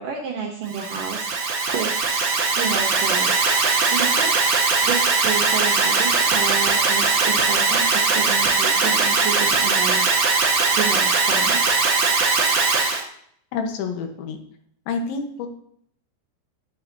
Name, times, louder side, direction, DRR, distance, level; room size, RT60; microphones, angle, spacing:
voice 1, 0.0-3.4 3.9-4.3 4.8-10.2 10.8-11.6, right 6 dB, 75° right, 1 dB, 2.0 m, -30 dB
Alarm, 0.7-13.0, right 4 dB, 55° right, 2.7 m, -20 dB
voice 2, 13.5-14.4 14.9-15.5, left 5 dB, 90° left, 5 dB, 3.6 m, -28 dB
10.5 x 10.0 x 2.8 m, 0.65 s
omnidirectional pair, 5.2 m